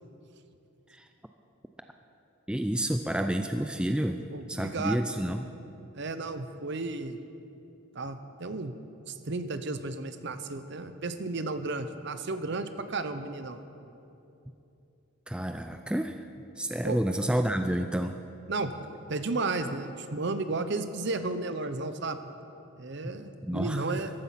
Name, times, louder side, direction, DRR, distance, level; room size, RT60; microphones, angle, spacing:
voice 1, 2.5-4.2 4.5-5.5 15.3-16.2 16.6-18.2 23.0-23.1 23.4-23.8, right 1 dB, 5° right, 6 dB, 0.3 m, -29 dB
voice 2, 4.3-5.0 5.9-7.2 7.9-8.7 9.1-13.6 16.8-17.0 18.5-18.7 19.1-22.2 22.8-24.1, right 3 dB, 55° right, 10 dB, 0.7 m, -33 dB
14.5 x 12.5 x 5.8 m, 2.8 s
head